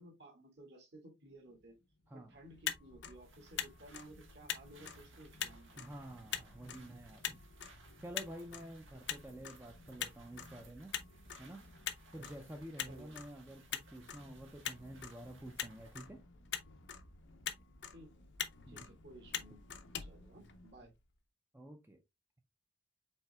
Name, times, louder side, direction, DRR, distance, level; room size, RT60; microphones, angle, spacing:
voice 1, 0.0-1.8 2.1-5.9 12.9-13.1 17.9-18.1 18.7-19.6 20.0-20.9, right 1 dB, 55° right, 2.0 m, -56 dB
sound 1, 1.3-20.8, left 1 dB, 90° left, 0.8 m, -63 dB
Motor vehicle (road), 2.4-21.0, left 9 dB, 60° left, 0.6 m, -45 dB
sound 2, 3.1-16.1, right 4 dB, 80° right, 1.4 m, -64 dB
voice 2, 5.8-7.4 8.0-10.9 11.4-11.7 12.1-16.2 18.7-18.9 21.5-22.0, right 1 dB, 10° right, 0.5 m, -50 dB
5.5 x 4.0 x 2.2 m
head